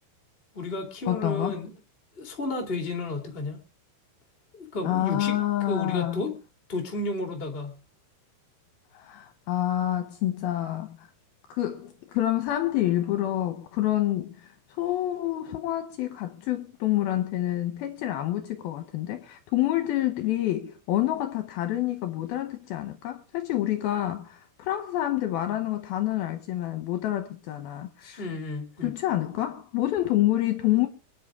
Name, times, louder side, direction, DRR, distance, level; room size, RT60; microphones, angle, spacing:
voice 1, 0.5-1.7 2.1-3.6 4.5-5.4 5.7-6.3 6.7-7.8 28.2-28.9, left 2 dB, 25° left, 1.4 m, -32 dB
voice 2, 1.1-1.6 4.8-6.2 8.9-11.1 11.5-14.5 14.8-28.2 28.8-30.9, left 14 dB, 75° left, 2.5 m, -28 dB
24.0 x 10.0 x 3.6 m
omnidirectional pair, 4.9 m